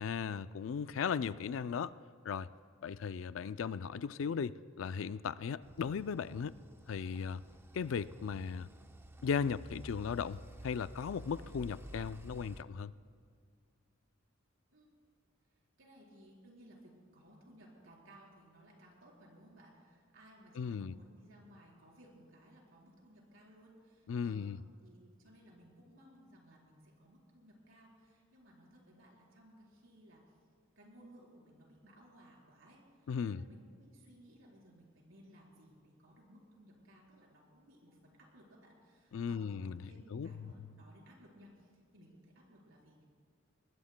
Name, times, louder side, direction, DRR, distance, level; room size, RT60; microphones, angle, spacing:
voice 1, 0.0-1.9 2.2-2.5 2.8-6.5 6.9-7.4 7.7-8.7 9.2-10.4 10.6-12.9 20.6-20.9 24.1-24.6 33.1-33.4 39.1-39.8 40.1-40.5, left 6 dB, 70° left, 15 dB, 0.4 m, -37 dB
sound 1, 5.6-12.6, right 1 dB, 10° right, 0.5 m, -52 dB
voice 2, 15.8-24.5 24.8-30.4 30.8-43.0, equal, 80° right, -2 dB, 4.2 m, -60 dB
22.0 x 20.5 x 2.2 m, 2.2 s
head